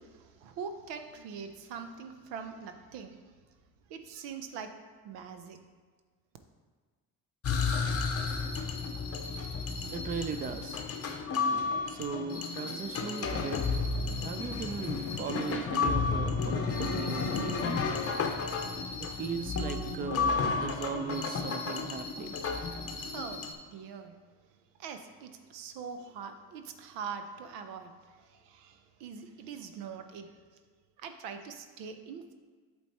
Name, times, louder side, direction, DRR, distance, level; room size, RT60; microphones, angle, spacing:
voice 1, 0.0-3.2 3.9-4.7 5.0-5.6 22.9-23.4 23.7-24.2 24.8-27.9 28.2-30.3 31.0-32.3, right 6 dB, 90° right, 7 dB, 0.7 m, -43 dB
sound 1, 7.4-23.5, left 4 dB, 35° left, 0.7 m, -32 dB
voice 2, 9.9-10.8 11.9-13.8 14.2-17.8 19.0-22.4, right 6 dB, 25° right, 9 dB, 0.3 m, -38 dB
8.2 x 3.1 x 4.1 m, 1.5 s
supercardioid pair, 80°, 42 cm